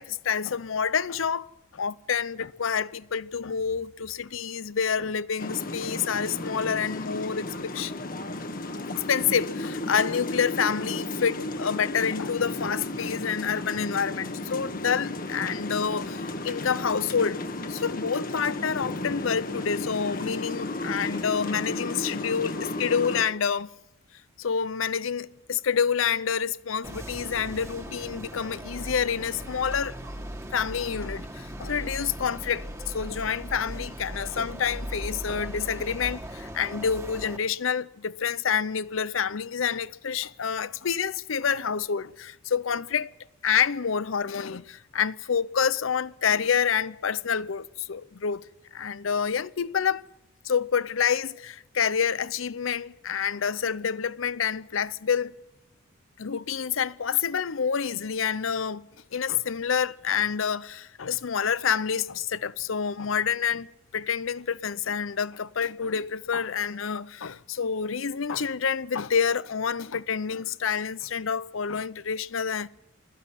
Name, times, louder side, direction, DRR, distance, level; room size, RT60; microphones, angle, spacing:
voice 1, 0.0-1.5 1.7-7.9 8.9-17.4 17.7-23.7 24.4-30.0 30.5-43.1 43.4-48.5 48.7-50.0 50.4-55.3 56.2-58.8 59.1-63.7 63.9-72.7, left 7 dB, 80° left, 0.7 m, -28 dB
sound 1, 5.4-23.2, left 2 dB, 45° left, 1.4 m, -34 dB
sound 2, 26.8-37.4, right 1 dB, 15° right, 1.6 m, -38 dB
20.5 x 14.5 x 10.0 m
head